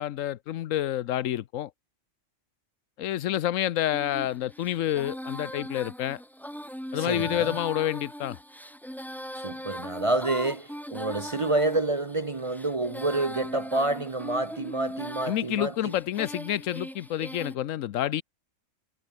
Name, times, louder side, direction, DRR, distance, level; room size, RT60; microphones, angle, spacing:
voice 1, 0.0-1.7 3.0-6.2 6.9-8.4 15.3-18.2, left 12 dB, 85° left, 1.0 m, -28 dB
Female singing, 3.9-17.6, equal, ahead, 2.8 m, -40 dB
voice 2, 7.0-7.5 9.4-15.9, right 2 dB, 30° right, 0.7 m, -28 dB
omnidirectional pair, 1.3 m